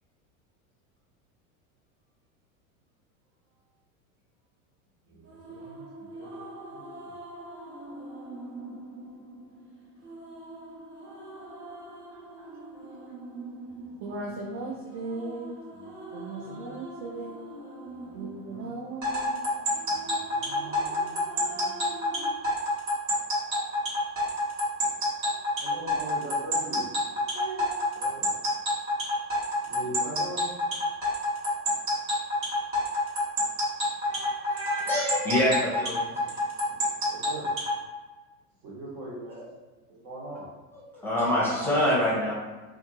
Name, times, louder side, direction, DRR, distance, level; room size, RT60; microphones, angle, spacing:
voice 1, 5.1-7.1 13.8-14.3 15.7-15.9 16.2-16.8 17.9-18.7 19.9-22.0 25.6-26.8 28.0-28.3 29.6-30.4 37.1-37.5 38.6-39.5 39.9-40.5, right 1 dB, 60° right, -4 dB, 1.3 m, -42 dB
sound 1, 5.2-22.3, right 2 dB, 25° right, 1.0 m, -44 dB
voice 2, 12.1-12.5 14.0-15.6 16.1-17.6 18.1-19.6 25.3-25.4 27.1-28.2, right 3 dB, 45° right, -1 dB, 0.4 m, -38 dB
sound 2, 19.0-37.8, left 1 dB, 75° right, 1.5 m, -27 dB
voice 3, 34.0-36.0 40.9-42.3, left 1 dB, 5° left, -6 dB, 0.6 m, -26 dB
2.5 x 2.5 x 2.7 m, 1.3 s
hypercardioid pair, 110°, 42 cm